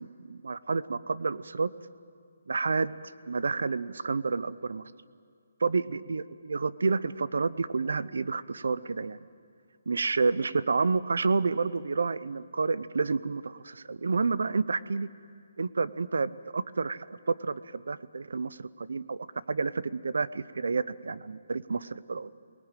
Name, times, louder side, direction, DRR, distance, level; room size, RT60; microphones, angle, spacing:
voice 1, 0.0-1.7 2.5-4.8 5.6-9.2 9.9-15.1 15.6-22.3, right 4 dB, 75° right, 16 dB, 0.7 m, -30 dB
23.5 x 19.5 x 9.1 m, 2.2 s
hypercardioid pair, 170°, 0 cm